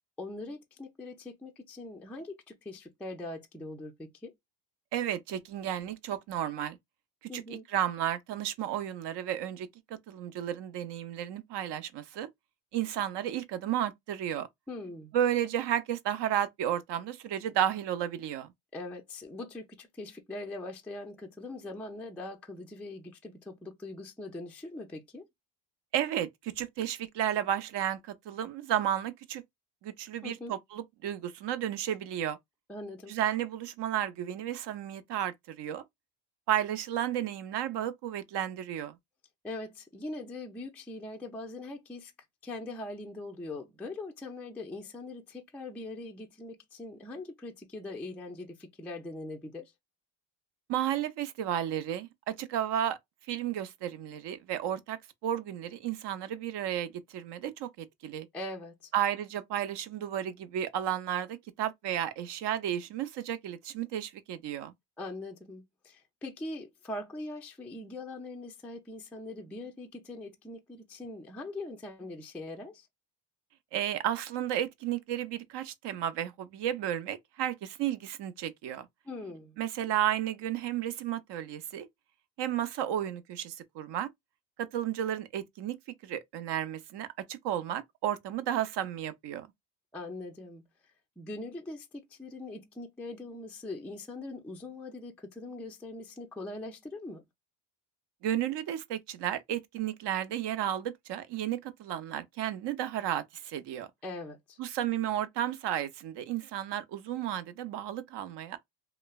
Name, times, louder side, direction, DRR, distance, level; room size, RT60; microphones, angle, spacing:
voice 1, 0.2-4.3 7.3-7.7 14.7-15.1 18.7-25.3 30.2-30.5 32.7-33.1 39.4-42.1 42.4-49.7 58.3-58.9 65.0-72.9 79.1-79.6 89.9-90.6 91.2-97.3 104.0-104.6, left 2 dB, 5° left, 0.3 m, -42 dB
voice 2, 4.9-6.8 7.3-12.3 12.7-14.5 15.1-18.5 25.9-28.0 28.3-29.4 29.8-32.4 33.1-35.8 36.5-38.9 50.7-53.0 53.3-58.3 58.9-64.7 73.7-78.9 79.6-81.9 82.4-84.1 84.7-85.8 86.0-89.5 98.2-103.9 104.6-108.6, right 11 dB, 55° right, 0.6 m, -33 dB
3.0 x 2.0 x 2.3 m
supercardioid pair, 90°, 50 cm